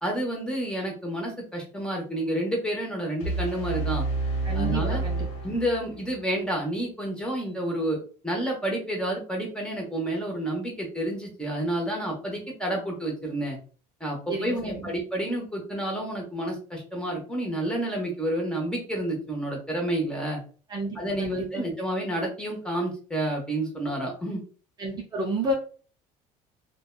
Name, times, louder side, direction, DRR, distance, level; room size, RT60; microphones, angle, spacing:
voice 1, 0.0-4.1 4.5-5.0 5.4-8.0 8.2-13.6 14.0-20.4 20.9-24.4, right 1 dB, 5° left, 0 dB, 0.9 m, -29 dB
sound 1, 3.2-6.2, right 3 dB, 45° left, 0.9 m, -29 dB
voice 2, 4.4-5.3 14.3-14.9 20.7-21.6 24.8-25.5, right 1 dB, 25° right, -1 dB, 0.5 m, -31 dB
2.6 x 2.2 x 2.2 m, 0.38 s
cardioid pair, 120°, 16 cm